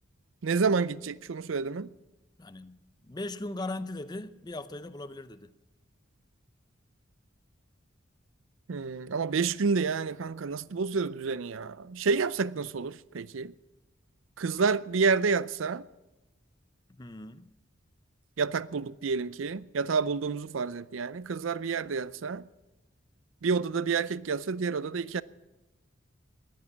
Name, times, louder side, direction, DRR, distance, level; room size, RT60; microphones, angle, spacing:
voice 1, 0.4-1.9 8.7-13.5 14.4-15.9 18.4-22.5 23.4-25.2, right 5 dB, 85° right, 0.5 m, -29 dB
voice 2, 2.4-5.5 16.9-17.5, left 2 dB, 20° left, 0.6 m, -39 dB
19.5 x 9.6 x 7.2 m
head